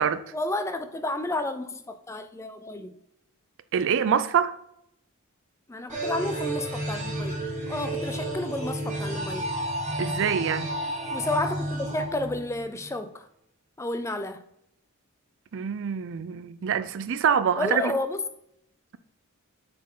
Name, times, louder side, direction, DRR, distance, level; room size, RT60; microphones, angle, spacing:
voice 1, 0.3-3.0 5.7-9.5 11.1-13.3 13.8-14.4 17.6-18.2, left 2 dB, 15° left, 0.4 m, -31 dB
voice 2, 3.7-4.6 10.0-10.8 15.5-17.9, right 7 dB, 60° right, 0.4 m, -25 dB
sound 1, 5.9-12.9, right 1 dB, 35° right, 1.5 m, -31 dB
7.2 x 4.4 x 3.7 m
head